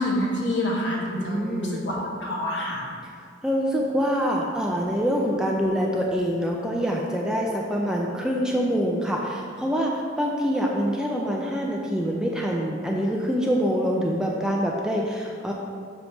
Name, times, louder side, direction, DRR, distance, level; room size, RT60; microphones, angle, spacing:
voice 1, 0.0-2.8, left 1 dB, 65° left, -3 dB, 1.3 m, -27 dB
voice 2, 1.2-1.9 3.0-3.1 3.4-15.5, equal, 5° right, -1 dB, 0.4 m, -25 dB
7.0 x 2.9 x 5.2 m, 2.2 s
head